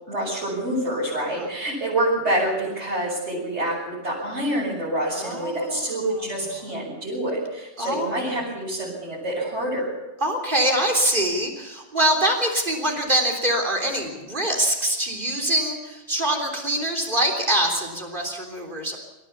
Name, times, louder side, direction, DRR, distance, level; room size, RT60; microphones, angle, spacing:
voice 1, 0.1-9.9, right 1 dB, 85° right, -6 dB, 7.4 m, -27 dB
voice 2, 5.1-6.2 7.8-8.4 10.2-19.0, right 1 dB, 45° right, 3 dB, 3.7 m, -24 dB
26.5 x 14.5 x 7.2 m, 1.1 s
omnidirectional pair, 1.1 m